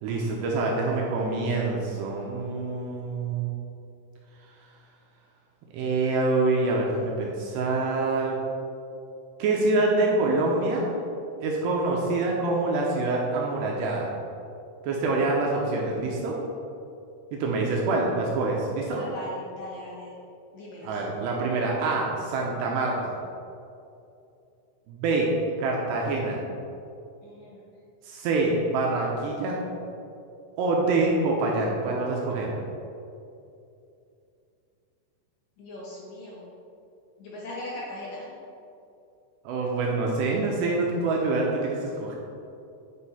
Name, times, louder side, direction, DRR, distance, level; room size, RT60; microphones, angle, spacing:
voice 1, 0.0-3.5 5.7-8.4 9.4-10.9 11.4-14.1 14.8-16.4 17.3-19.0 20.8-23.1 24.9-25.3 25.6-26.4 28.0-29.6 30.6-32.5 39.4-42.1, right 3 dB, 80° right, -2 dB, 2.5 m, -26 dB
voice 2, 18.9-20.1 20.5-21.0 27.2-27.6 35.6-36.5 37.2-38.3, left 1 dB, 80° left, -6 dB, 1.9 m, -39 dB
9.9 x 5.4 x 4.2 m, 2.7 s
omnidirectional pair, 5.6 m